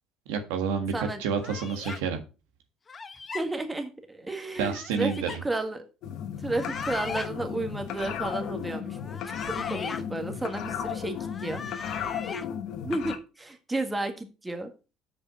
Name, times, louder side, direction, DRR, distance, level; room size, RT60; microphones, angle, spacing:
voice 1, 0.3-2.2 4.6-5.4, right 6 dB, 85° right, 6 dB, 1.5 m, -29 dB
sound 1, 1.4-2.0 2.9-3.4 4.5-5.4 6.4-7.3 9.0-10.0 11.1-12.4, left 5 dB, 30° left, 1.0 m, -38 dB
voice 2, 3.3-5.1 5.4-5.8 6.4-9.0 9.3-11.6 12.8-14.7, right 2 dB, 15° right, 6 dB, 1.7 m, -32 dB
sound 2, 6.0-13.2, left 8 dB, 65° left, 1.1 m, -35 dB
7.0 x 5.2 x 5.6 m, 0.32 s
supercardioid pair, 75°, 0 cm